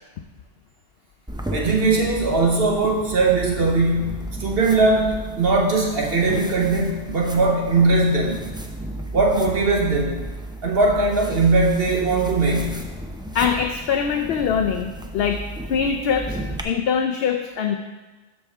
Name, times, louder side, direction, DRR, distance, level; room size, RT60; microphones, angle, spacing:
sound 1, 1.3-16.6, right 1 dB, 5° right, 0.4 m, -33 dB
voice 1, 1.5-8.5 9.1-10.2 10.6-12.8, right 3 dB, 55° right, -1 dB, 1.3 m, -20 dB
voice 2, 13.3-15.4 15.7-16.4 16.6-17.8, left 7 dB, 65° left, 4 dB, 0.7 m, -23 dB
12.5 x 5.4 x 3.6 m, 1.2 s
omnidirectional pair, 1.2 m